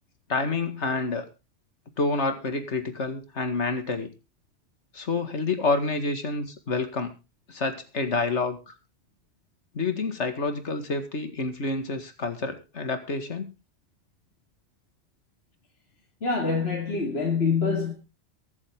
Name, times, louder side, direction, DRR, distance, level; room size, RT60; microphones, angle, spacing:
voice 1, 0.3-1.3 2.0-4.1 4.9-7.1 7.5-8.7 9.7-13.5, left 3 dB, 75° left, 2.3 m, -28 dB
voice 2, 16.2-17.9, left 5 dB, 60° left, 2.5 m, -25 dB
23.0 x 7.7 x 3.7 m
omnidirectional pair, 1.2 m